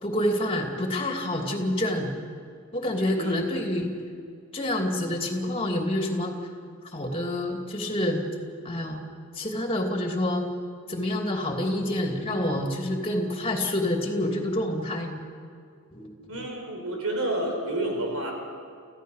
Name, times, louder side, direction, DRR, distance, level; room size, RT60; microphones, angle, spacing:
voice 1, 0.0-2.2 2.7-3.9 4.5-6.4 6.9-8.3 8.6-9.0 9.3-10.4 10.9-15.2 15.9-16.4, left 1 dB, 25° left, 2 dB, 2.7 m, -27 dB
voice 2, 16.3-18.3, right 1 dB, 80° right, 1 dB, 5.0 m, -29 dB
26.5 x 15.5 x 6.6 m, 2.3 s
head